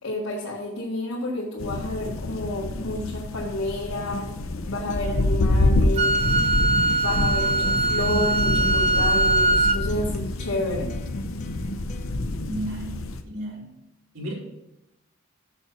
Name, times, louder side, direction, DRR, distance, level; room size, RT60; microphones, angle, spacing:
voice 1, 0.0-4.3 4.7-6.2 7.0-10.9, left 1 dB, 90° left, -6 dB, 1.8 m, -30 dB
sound 1, 1.6-13.2, left 2 dB, 70° left, 0.7 m, -27 dB
Acoustic guitar, 4.1-12.1, equal, 35° left, 0.5 m, -39 dB
Wind instrument woodwind instrument, 6.0-9.8, right 2 dB, 30° right, 0.3 m, -22 dB
voice 2, 12.4-13.8 14.1-14.3, right 1 dB, 85° right, -3 dB, 2.8 m, -34 dB
6.9 x 6.1 x 5.7 m, 0.90 s
head